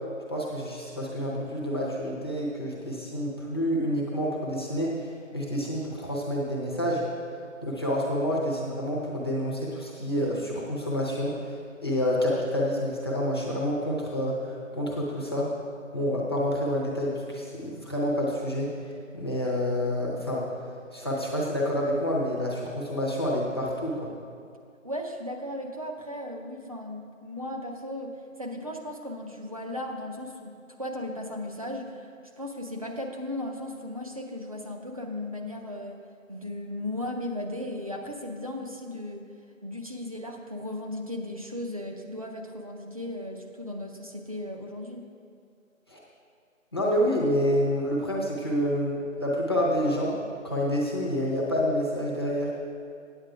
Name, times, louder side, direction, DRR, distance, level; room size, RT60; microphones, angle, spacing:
voice 1, 0.3-7.0 7.6-11.6 11.8-15.5 15.9-18.7 19.1-20.5 20.9-24.1 45.9-46.0 46.7-50.2 50.4-52.6, equal, 20° left, -5 dB, 0.7 m, -28 dB
voice 2, 24.8-30.5 30.8-32.1 32.4-36.0 36.3-39.3 39.6-45.1, left 1 dB, 25° right, 2 dB, 0.6 m, -36 dB
9.0 x 7.9 x 4.8 m, 2.5 s
figure-of-eight pair, 155°, 40 cm